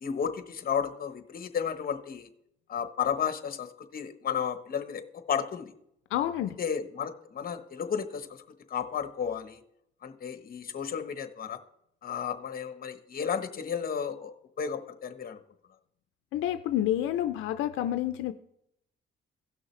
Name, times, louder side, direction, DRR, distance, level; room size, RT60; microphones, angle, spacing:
voice 1, 0.0-2.3 2.7-5.7 6.6-8.4 8.7-9.6 10.0-11.6 12.0-15.4, left 7 dB, 50° left, 9 dB, 1.1 m, -33 dB
voice 2, 6.1-6.6 16.3-18.3, left 12 dB, 90° left, 10 dB, 0.5 m, -29 dB
16.5 x 6.3 x 3.2 m, 0.76 s
cardioid pair, 90°, 20 cm